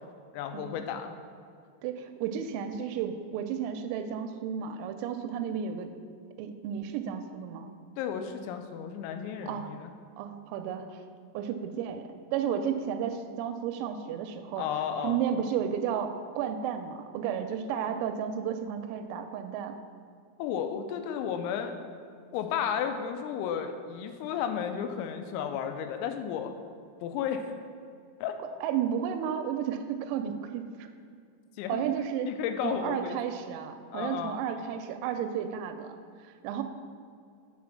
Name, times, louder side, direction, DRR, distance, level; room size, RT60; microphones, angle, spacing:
voice 1, 0.3-1.1 8.0-9.9 14.6-15.2 20.4-21.9 22.3-26.5 27.0-27.5 28.2-28.4 31.6-31.8 32.2-33.2 33.9-34.4, left 8 dB, 90° left, 6 dB, 3.3 m, -33 dB
voice 2, 1.8-5.9 6.4-7.7 9.4-9.7 10.2-11.0 11.3-19.8 28.6-30.9 31.7-32.3 32.6-36.0 36.4-36.6, right 8 dB, 85° right, 8 dB, 3.2 m, -33 dB
8.5 x 4.3 x 5.9 m, 2.4 s
omnidirectional pair, 5.9 m